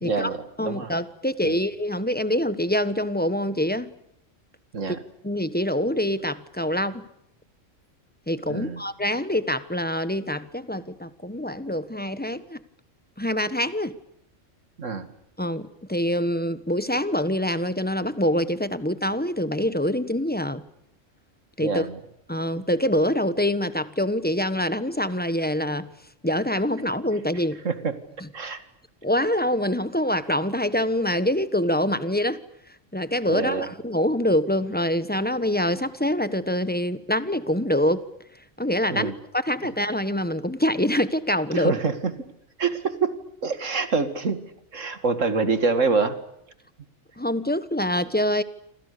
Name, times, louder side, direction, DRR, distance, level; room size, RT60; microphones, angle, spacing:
voice 1, 0.0-1.0 1.4-1.6 4.7-5.0 8.5-8.8 14.8-15.1 21.6-22.0 27.6-28.0 28.3-28.6 33.3-33.7 38.9-39.2 41.5-42.3 42.6-43.1 43.4-46.2, right 4 dB, 70° right, 10 dB, 2.5 m, -26 dB
voice 2, 0.6-3.9 5.2-7.0 8.3-12.6 13.2-13.9 15.4-20.6 21.6-21.8 22.3-25.9 26.2-27.6 29.0-32.4 32.9-38.0 38.6-41.7 47.2-48.4, left 1 dB, 10° left, 13 dB, 1.2 m, -25 dB
28.5 x 27.0 x 6.9 m, 0.76 s
omnidirectional pair, 1.4 m